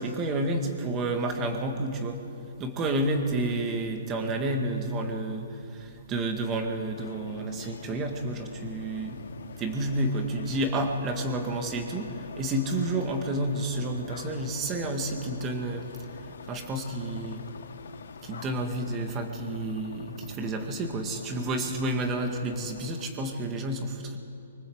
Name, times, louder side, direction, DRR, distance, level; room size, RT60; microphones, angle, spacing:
voice 1, 0.0-2.3 2.6-9.2 9.6-17.5 18.2-24.2, right 1 dB, 15° right, 4 dB, 1.9 m, -30 dB
sound 1, 6.9-23.1, left 6 dB, 80° left, 1.4 m, -44 dB
27.0 x 25.0 x 8.0 m, 2.8 s
hypercardioid pair, 180°, 0 cm